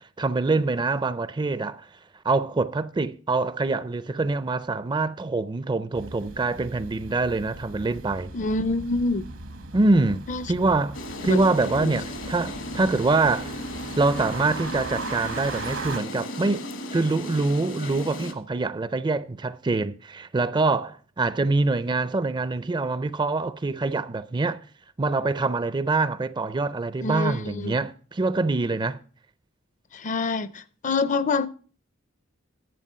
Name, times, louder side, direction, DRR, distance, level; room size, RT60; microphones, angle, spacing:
voice 1, 0.0-1.9 2.2-8.3 9.7-13.5 14.0-16.6 16.9-24.6 25.0-29.0, right 3 dB, 25° right, 0.4 m, -25 dB
sound 1, 5.9-16.0, right 3 dB, 75° right, 1.1 m, -38 dB
voice 2, 8.3-9.3 10.3-10.5 11.3-11.4 11.8-11.9 27.0-27.7 29.9-31.5, left 3 dB, 40° left, 0.5 m, -26 dB
sound 2, 10.9-18.3, left 1 dB, 70° left, 1.3 m, -35 dB
11.0 x 7.8 x 5.5 m
head